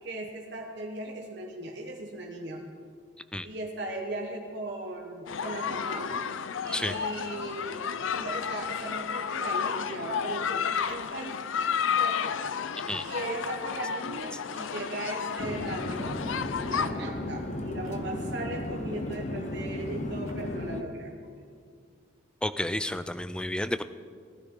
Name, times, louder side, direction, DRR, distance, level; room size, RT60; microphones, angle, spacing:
voice 1, 0.0-2.6 3.4-6.1 6.6-7.8 8.1-11.4 12.0-12.3 13.0-21.3, right 2 dB, 55° right, 0 dB, 1.2 m, -38 dB
sound 1, 5.3-16.9, left 7 dB, 80° left, 0.5 m, -32 dB
sound 2, 8.0-8.6 10.8-11.6 12.2-12.4 13.6-13.9 15.9-16.1 17.8-18.4 20.0-20.5, right 3 dB, 90° right, 1.6 m, -53 dB
Chatter / Fixed-wing aircraft airplane, 15.4-20.8, left 1 dB, 35° left, 0.7 m, -34 dB
voice 2, 22.4-23.8, left 1 dB, 5° left, 12 dB, 0.3 m, -31 dB
18.5 x 12.5 x 3.8 m, 2.1 s
head